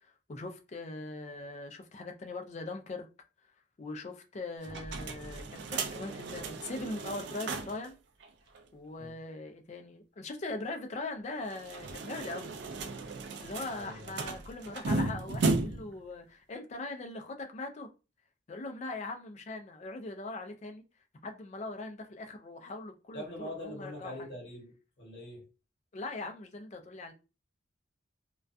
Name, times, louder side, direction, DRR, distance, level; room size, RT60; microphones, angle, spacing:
voice 1, 0.0-3.1 3.8-8.0 8.7-12.6 13.4-17.9 18.5-20.8 21.2-24.3 25.9-27.1, left 2 dB, 35° left, 0.3 m, -41 dB
sound 1, 4.6-7.9 8.2-8.3 8.5-8.6 11.4-16.0, right 3 dB, 55° right, 0.3 m, -35 dB
voice 2, 13.7-14.2 23.1-25.4, equal, 55° left, 0.9 m, -43 dB
2.3 x 2.2 x 2.5 m
head